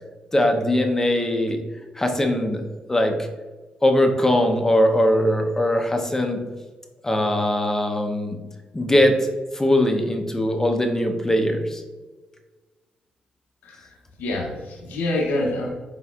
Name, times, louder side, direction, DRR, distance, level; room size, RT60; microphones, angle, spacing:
voice 1, 0.3-1.6 1.9-2.6 2.9-3.2 3.8-6.4 7.0-8.4 8.7-9.3 9.5-11.8, left 1 dB, 15° left, 4 dB, 0.6 m, -20 dB
voice 2, 13.6-15.7, left 1 dB, 90° left, -1 dB, 0.7 m, -27 dB
4.0 x 3.4 x 2.3 m, 1.3 s
cardioid pair, 65°, 3 cm